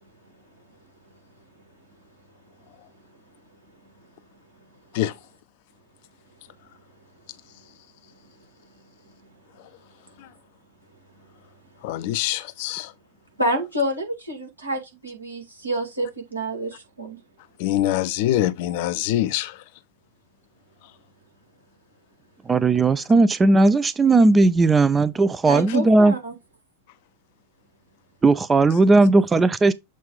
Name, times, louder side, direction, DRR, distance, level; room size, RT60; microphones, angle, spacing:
voice 1, 11.8-12.9 17.6-19.6, left 13 dB, 50° left, 0.5 m, -24 dB
voice 2, 13.4-17.2 25.5-26.4 29.0-29.1, right 1 dB, 85° right, 2.0 m, -28 dB
voice 3, 22.5-26.1 28.2-29.7, right 3 dB, 15° right, 0.4 m, -17 dB
7.4 x 2.5 x 5.2 m
figure-of-eight pair, 90°, 0 cm